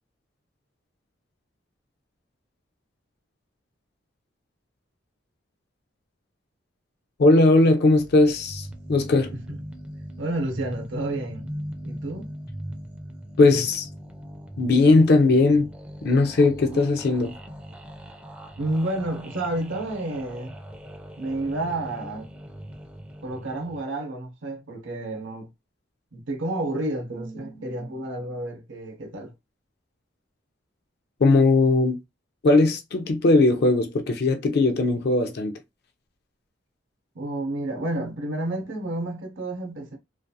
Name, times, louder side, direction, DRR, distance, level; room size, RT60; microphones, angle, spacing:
voice 1, 7.2-9.3 13.4-13.9 14.6-15.7 16.0-17.4 31.2-32.0 32.4-35.5, left 2 dB, 55° left, 0.4 m, -19 dB
sound 1, 7.9-23.8, equal, 5° right, 0.4 m, -40 dB
voice 2, 10.2-11.5 11.8-12.3 16.7-16.8 18.6-20.6 21.2-22.3 23.2-25.5 26.1-29.3 37.1-40.0, right 1 dB, 70° right, 0.6 m, -30 dB
2.4 x 2.2 x 2.6 m
head